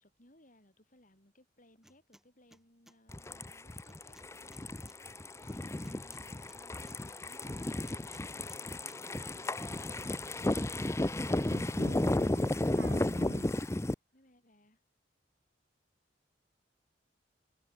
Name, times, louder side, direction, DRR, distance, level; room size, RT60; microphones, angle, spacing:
voice 1, 0.0-10.7 14.1-14.8, left 1 dB, 45° left, 7.4 m, -64 dB
sound 1, 1.8-2.2 2.5-3.0 3.9-5.0 5.8-7.0 7.9-8.6 8.9-9.0, equal, ahead, 5.1 m, -60 dB
sound 2, 3.1-13.9, left 1 dB, 15° left, 0.6 m, -33 dB
voice 2, 11.5-13.5, right 1 dB, 80° right, 4.8 m, -46 dB
head